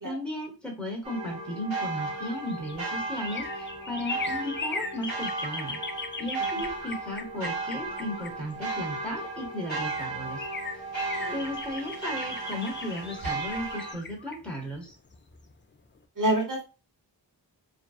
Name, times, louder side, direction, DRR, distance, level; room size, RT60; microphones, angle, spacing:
voice 1, 0.0-5.8 6.2-10.4 11.3-14.9, left 1 dB, ahead, -1 dB, 1.0 m, -35 dB
sound 1, 1.0-13.9, right 3 dB, 90° right, 1.0 m, -35 dB
sound 2, 2.1-8.9 9.4-9.5 9.7-15.5 15.9-16.0, left 4 dB, 30° left, 0.3 m, -39 dB
voice 2, 16.2-16.6, right 1 dB, 45° right, -1 dB, 1.0 m, -27 dB
2.6 x 2.2 x 2.3 m, 0.33 s
wide cardioid pair, 50°, 44 cm